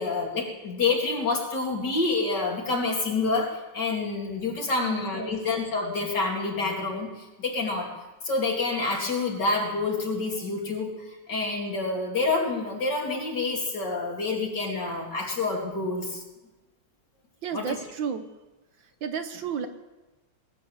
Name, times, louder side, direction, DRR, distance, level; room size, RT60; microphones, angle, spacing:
voice 1, 0.0-7.9 8.2-16.2 17.5-17.8, left 3 dB, 55° left, -1 dB, 3.2 m, -28 dB
voice 2, 4.8-5.3 17.4-18.2 19.0-19.7, right 7 dB, 65° right, 8 dB, 1.6 m, -32 dB
21.0 x 9.3 x 7.1 m, 1.1 s
omnidirectional pair, 2.3 m